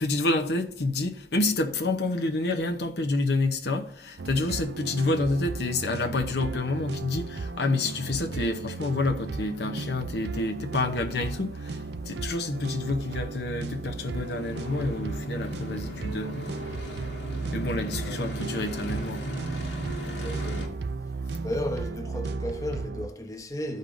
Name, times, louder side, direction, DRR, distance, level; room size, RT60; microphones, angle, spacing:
voice 1, 0.0-16.6 17.5-19.4, left 2 dB, 60° left, 0.8 m, -28 dB
sound 1, 4.2-23.1, right 4 dB, 65° right, 0.4 m, -35 dB
sound 2, 14.0-20.7, equal, 80° left, 1.6 m, -38 dB
voice 2, 20.0-20.8 21.4-23.8, left 1 dB, 20° left, 0.9 m, -34 dB
14.5 x 5.3 x 2.6 m
head